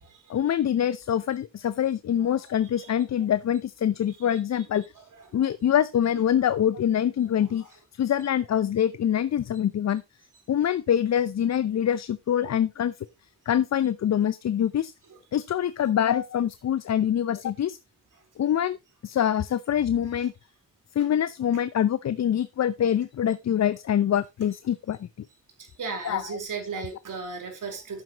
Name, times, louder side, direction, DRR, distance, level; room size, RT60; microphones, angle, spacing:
voice 1, 0.3-4.8 5.3-7.7 7.9-10.0 10.5-12.9 13.5-14.9 15.3-17.8 18.4-18.8 19.0-20.3 20.9-25.1 26.0-26.4, left 9 dB, 50° left, 0.7 m, -25 dB
voice 2, 25.6-28.0, right 4 dB, 65° right, 4.1 m, -36 dB
11.5 x 8.7 x 3.0 m
hypercardioid pair, 40°, 35 cm